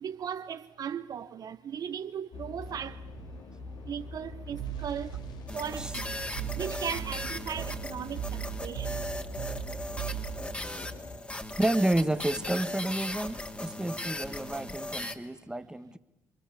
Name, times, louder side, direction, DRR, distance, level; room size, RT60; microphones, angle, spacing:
voice 1, 0.0-3.0 3.9-5.1 5.5-6.0 6.6-9.0, right 8 dB, 55° right, 1.2 m, -37 dB
sound 1, 2.3-11.2, left 3 dB, 65° left, 3.5 m, -44 dB
sound 2, 4.5-10.6, right 15 dB, 80° right, 1.0 m, -39 dB
sound 3, 5.5-15.1, left 1 dB, 15° left, 3.0 m, -38 dB
voice 2, 11.6-16.0, right 1 dB, 10° right, 1.8 m, -30 dB
29.5 x 23.5 x 8.4 m
hypercardioid pair, 55°, 8 cm